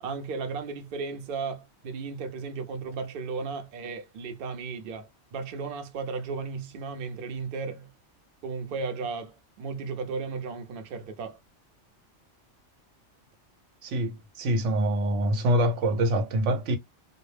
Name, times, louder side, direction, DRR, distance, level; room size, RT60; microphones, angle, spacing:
voice 1, 0.0-7.9 8.4-11.4, right 4 dB, 60° right, 0.6 m, -35 dB
voice 2, 13.8-16.8, right 1 dB, 85° right, 0.9 m, -25 dB
2.2 x 2.0 x 3.0 m
omnidirectional pair, 1.2 m